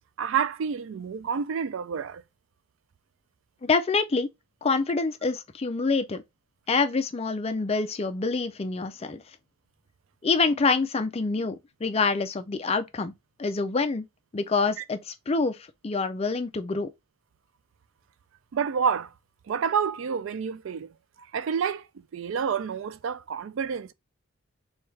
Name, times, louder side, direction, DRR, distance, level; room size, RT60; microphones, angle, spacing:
voice 1, 0.2-2.2 14.8-14.9 18.5-19.1 19.5-20.9 21.2-21.9 22.1-23.9, right 7 dB, 60° right, 0.3 m, -28 dB
voice 2, 3.6-4.3 4.6-6.2 6.7-9.2 10.2-13.1 13.4-14.0 14.3-15.6 15.8-16.9, left 4 dB, 30° left, 0.4 m, -26 dB
4.6 x 2.3 x 3.1 m
head